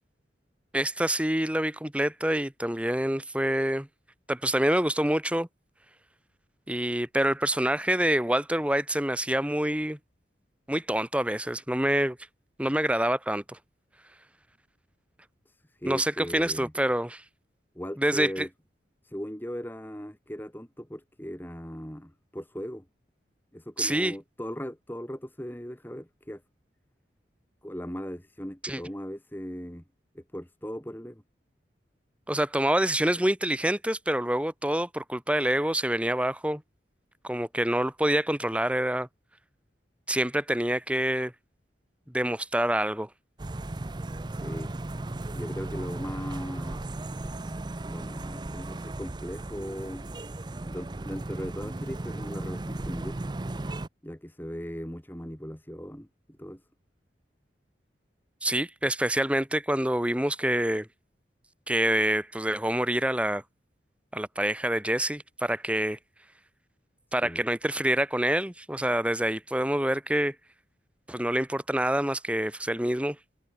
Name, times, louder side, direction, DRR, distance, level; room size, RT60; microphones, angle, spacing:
voice 1, 0.7-3.9 4.3-5.5 6.7-10.0 10.7-12.2 12.6-13.6 15.9-17.2 18.0-18.5 23.8-24.1 28.6-28.8 32.3-36.6 37.2-39.1 40.1-41.3 42.1-43.1 58.4-60.9 61.7-63.4 64.1-66.0 67.1-70.3 71.1-73.2, right 1 dB, 5° right, 1.4 m, -26 dB
voice 2, 15.5-16.7 17.8-18.5 19.0-22.8 23.5-26.4 27.6-29.8 30.1-31.2 44.3-44.8 45.3-46.8 47.9-50.1 50.7-53.2 54.0-56.1 56.4-56.6 67.2-67.4, equal, 10° left, 2.1 m, -38 dB
sound 1, 43.4-53.9, right 2 dB, 25° right, 0.5 m, -36 dB
head